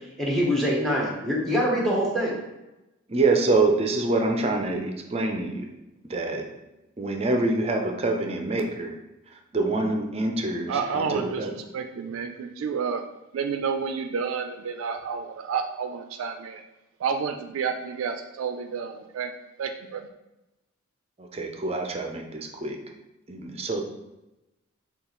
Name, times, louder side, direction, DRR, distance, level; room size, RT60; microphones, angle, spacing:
voice 1, 0.2-2.4, equal, ahead, -3 dB, 0.8 m, -24 dB
voice 2, 3.1-5.7 6.0-6.5 7.0-9.0 9.5-11.5 21.2-22.8 23.3-23.8, right 3 dB, 30° right, 3 dB, 0.5 m, -26 dB
voice 3, 10.7-11.4 11.7-13.0 13.3-16.6 17.0-19.3 19.6-20.0, right 6 dB, 90° right, 7 dB, 0.3 m, -30 dB
6.7 x 2.4 x 2.9 m, 0.98 s
head